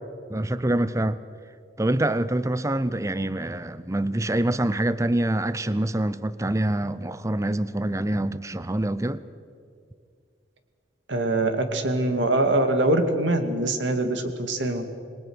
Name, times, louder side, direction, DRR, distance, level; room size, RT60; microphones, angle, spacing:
voice 1, 0.3-1.2 1.8-9.2, right 1 dB, 15° right, 0.6 m, -25 dB
voice 2, 11.1-14.9, right 2 dB, 80° right, 2.2 m, -23 dB
27.0 x 21.0 x 6.3 m
head